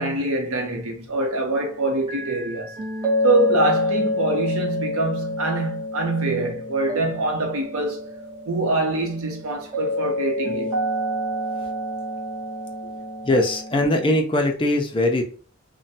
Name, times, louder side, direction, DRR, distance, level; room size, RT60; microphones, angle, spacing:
voice 1, 0.0-2.7 3.2-8.1 8.5-10.9, right 2 dB, 70° right, 0.8 m, -24 dB
sound 1, 2.1-14.2, left 1 dB, 20° right, 0.8 m, -28 dB
voice 2, 13.2-15.2, left 1 dB, 25° left, 0.5 m, -21 dB
3.1 x 2.2 x 2.7 m
head